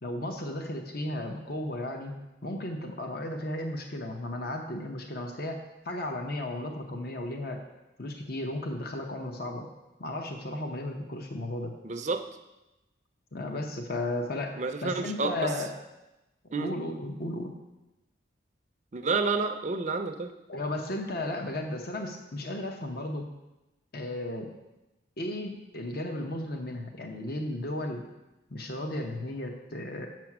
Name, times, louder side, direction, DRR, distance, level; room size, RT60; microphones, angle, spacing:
voice 1, 0.0-2.1 2.4-7.6 8.0-9.7 10.0-11.7 13.3-14.6 14.8-15.7 16.6-17.5 20.5-23.3 23.9-24.5 25.2-28.1 28.5-30.1, left 1 dB, 50° left, 3 dB, 0.8 m, -34 dB
voice 2, 11.8-12.2 14.6-15.5 16.5-16.7 18.9-20.3, right 4 dB, 40° right, 6 dB, 0.5 m, -29 dB
7.2 x 6.1 x 6.0 m, 1.0 s
head